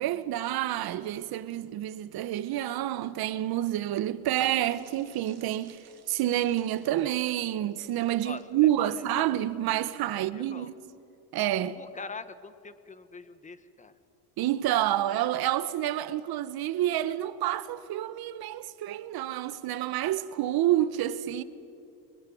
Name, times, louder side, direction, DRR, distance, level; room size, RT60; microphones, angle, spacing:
voice 1, 0.0-5.8 6.1-10.7 11.3-11.8 14.4-21.4, right 13 dB, 50° right, 1.4 m, -28 dB
sound 1, 4.3-9.7 10.1-10.3, right 6 dB, 35° right, 2.8 m, -53 dB
voice 2, 10.1-10.7 11.7-13.9, left 4 dB, 15° left, 1.4 m, -43 dB
23.0 x 22.0 x 9.4 m
supercardioid pair, 110°, 46 cm